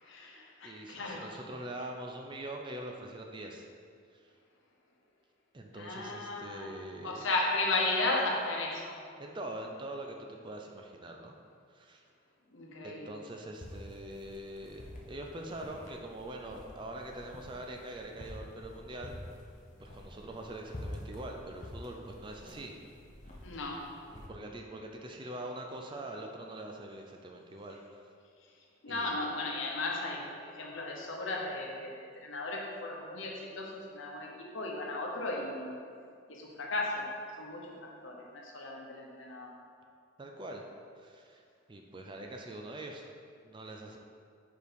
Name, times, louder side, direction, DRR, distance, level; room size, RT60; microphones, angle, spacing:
voice 1, 0.0-1.3 5.7-6.7 7.0-9.0 12.5-13.2 23.4-23.9 28.4-35.8 36.3-37.1 37.4-39.5, left 2 dB, 70° left, -1 dB, 0.9 m, -35 dB
voice 2, 0.6-3.7 4.1-4.3 5.5-7.2 9.2-11.4 11.7-12.0 12.8-19.2 19.8-22.8 24.1-28.1 28.9-29.1 40.2-40.6 41.0-41.4 41.7-43.1 43.4-44.0, right 1 dB, 25° right, 2 dB, 0.4 m, -43 dB
sound 1, 13.5-24.3, left 1 dB, 35° left, 0.8 m, -48 dB
4.6 x 4.6 x 5.2 m, 2.3 s
head